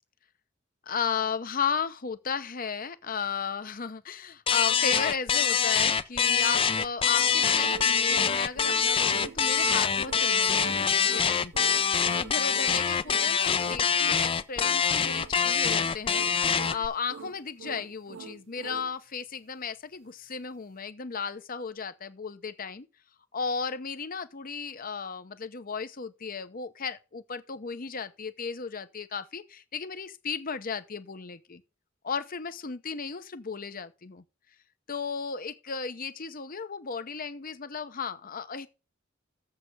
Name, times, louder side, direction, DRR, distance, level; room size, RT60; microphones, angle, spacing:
voice 1, 0.9-22.9 23.3-31.6 32.0-34.2 34.9-38.7, left 6 dB, 45° left, 0.9 m, -35 dB
sound 1, 4.5-16.9, left 7 dB, 25° left, 0.5 m, -25 dB
sound 2, 7.1-18.9, right 6 dB, 65° right, 0.5 m, -43 dB
7.4 x 6.6 x 6.6 m
head